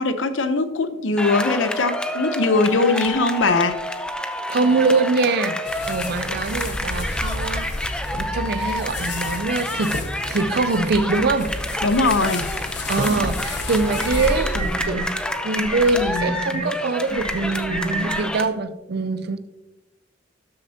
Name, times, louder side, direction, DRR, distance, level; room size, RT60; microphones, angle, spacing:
voice 1, 0.0-3.8 11.8-12.5, left 3 dB, 85° left, 0.8 m, -20 dB
sound 1, 1.2-18.4, left 1 dB, 5° left, 0.5 m, -29 dB
voice 2, 4.5-11.5 12.9-15.0 15.4-19.4, right 3 dB, 55° right, 0.5 m, -23 dB
sound 2, 5.6-14.8, left 2 dB, 65° left, 1.1 m, -31 dB
sound 3, 13.4-13.5 14.0-15.0 15.5-16.6 17.1-18.2, right 1 dB, 25° right, 2.2 m, -29 dB
12.5 x 6.6 x 2.8 m
head